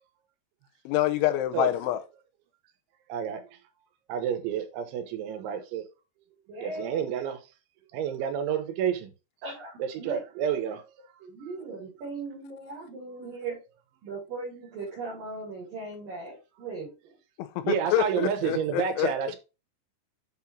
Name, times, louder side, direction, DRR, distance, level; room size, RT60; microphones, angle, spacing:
voice 1, 0.9-2.0 17.4-19.1, left 13 dB, 90° left, 3.2 m, -26 dB
voice 2, 3.1-3.4 4.1-5.8 6.6-7.4 7.9-9.1 9.8-10.8 17.6-19.4, right 8 dB, 85° right, 3.6 m, -29 dB
voice 3, 6.5-7.1 9.4-10.2 11.2-13.6 14.0-17.2, right 3 dB, 55° right, 4.0 m, -39 dB
8.3 x 6.0 x 2.8 m
omnidirectional pair, 5.2 m